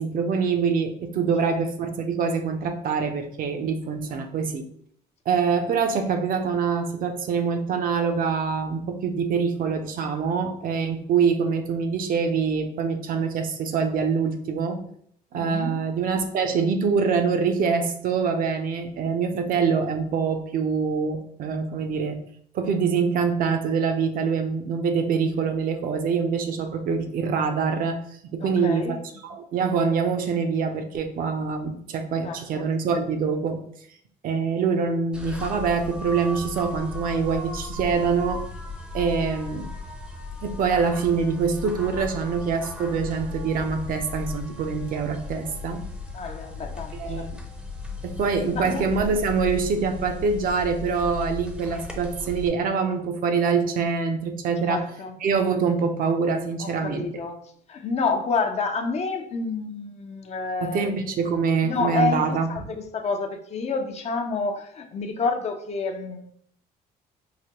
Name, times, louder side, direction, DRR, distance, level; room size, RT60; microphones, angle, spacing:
voice 1, 0.0-4.6 5.3-14.8 15.3-22.2 22.5-28.0 28.3-29.0 29.2-33.6 34.2-38.4 38.9-39.7 40.4-45.8 46.9-47.3 48.0-54.8 55.2-57.1 60.6-62.5, right 5 dB, 55° right, 6 dB, 0.5 m, -25 dB
voice 2, 15.3-15.8 28.4-29.0 32.2-32.7 46.1-47.3 48.5-48.8 54.6-55.2 56.6-60.9 61.6-66.3, left 4 dB, 40° left, 4 dB, 0.5 m, -29 dB
sound 1, 35.1-52.5, left 3 dB, 5° right, 0.6 m, -36 dB
4.8 x 2.1 x 2.9 m, 0.65 s
cardioid pair, 110°, 17 cm